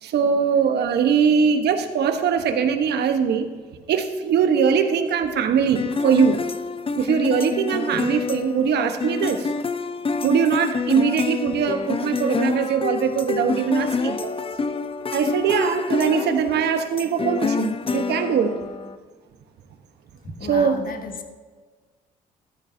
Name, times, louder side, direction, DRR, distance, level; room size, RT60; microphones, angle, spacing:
voice 1, 0.0-3.5 3.9-6.4 6.9-9.5 10.2-14.5 15.1-18.5 20.5-20.8, right 6 dB, 70° right, 7 dB, 1.2 m, -21 dB
sound 1, 5.8-19.0, left 4 dB, 30° left, 0.7 m, -27 dB
voice 2, 20.2-21.3, left 4 dB, 50° left, 6 dB, 1.5 m, -35 dB
14.0 x 13.0 x 2.8 m, 1.5 s
hypercardioid pair, 50°, 18 cm